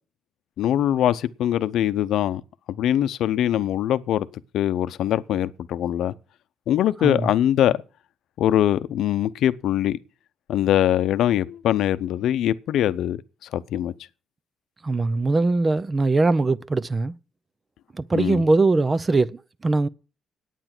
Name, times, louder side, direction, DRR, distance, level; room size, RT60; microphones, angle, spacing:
voice 1, 0.6-2.4 2.7-4.3 4.5-6.1 6.7-7.8 8.4-10.0 10.5-13.2 13.5-13.9 18.1-18.4, left 11 dB, 80° left, 0.7 m, -22 dB
voice 2, 14.8-17.1 17.9-19.9, right 3 dB, 30° right, 0.6 m, -21 dB
9.3 x 8.9 x 6.0 m
cardioid pair, 90°, 0 cm